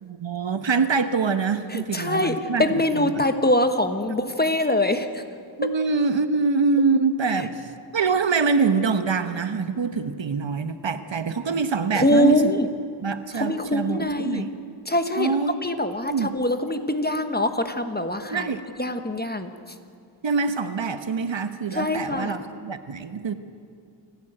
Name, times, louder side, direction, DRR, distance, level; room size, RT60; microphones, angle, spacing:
voice 1, 0.0-3.2 5.6-12.6 13.0-14.5 15.2-15.6 15.9-16.4 18.3-18.6 20.2-23.3, right 4 dB, 65° right, 10 dB, 1.1 m, -25 dB
voice 2, 1.7-5.2 11.9-12.7 13.4-14.5 14.9-15.3 15.6-18.5 18.8-19.5 21.7-22.4, left 1 dB, 20° left, 8 dB, 1.3 m, -23 dB
28.5 x 10.5 x 9.0 m, 2.3 s
wide cardioid pair, 75°, 47 cm